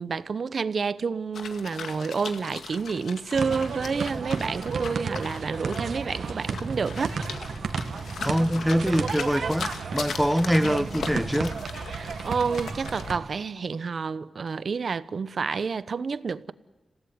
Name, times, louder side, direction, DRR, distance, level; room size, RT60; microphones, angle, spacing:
voice 1, 0.0-7.2 11.9-16.5, right 5 dB, 60° right, 0.9 m, -29 dB
sound 1, 1.3-13.1, left 5 dB, 90° left, 2.0 m, -39 dB
sound 2, 3.3-13.2, right 5 dB, 80° right, 1.8 m, -33 dB
voice 2, 8.2-11.6, equal, ahead, 0.7 m, -24 dB
27.5 x 17.0 x 9.6 m
cardioid pair, 80°, 0 cm